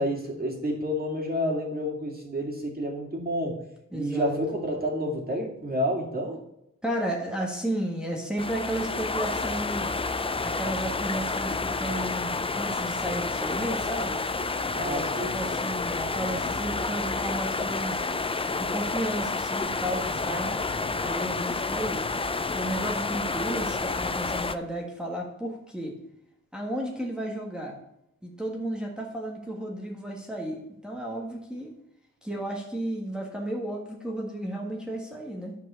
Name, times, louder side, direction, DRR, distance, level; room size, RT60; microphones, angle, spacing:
voice 1, 0.0-3.6 3.9-6.4 14.7-15.3, equal, 30° right, 0 dB, 2.5 m, -29 dB
voice 2, 3.9-4.4 6.8-9.9 10.4-14.2 14.7-18.0 18.6-20.6 21.0-22.1 22.5-26.0 26.5-27.8 28.2-31.7 32.2-35.6, right 1 dB, 5° right, -1 dB, 1.6 m, -33 dB
sound 1, 8.4-24.5, left 3 dB, 20° left, 0.4 m, -29 dB
10.5 x 4.6 x 7.0 m, 0.81 s
wide cardioid pair, 125°, 32 cm